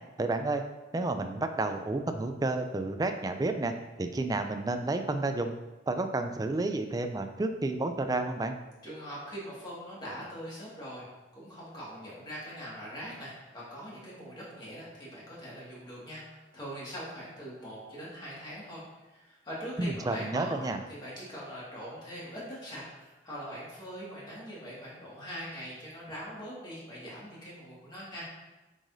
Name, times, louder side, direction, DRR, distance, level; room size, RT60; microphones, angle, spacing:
voice 1, 0.2-0.6 0.9-5.5 5.9-8.5 19.8-20.8, right 2 dB, 20° right, 7 dB, 0.3 m, -31 dB
voice 2, 8.8-11.1 11.3-28.3, equal, 25° left, -7 dB, 1.9 m, -42 dB
7.3 x 4.9 x 2.7 m, 1.1 s
head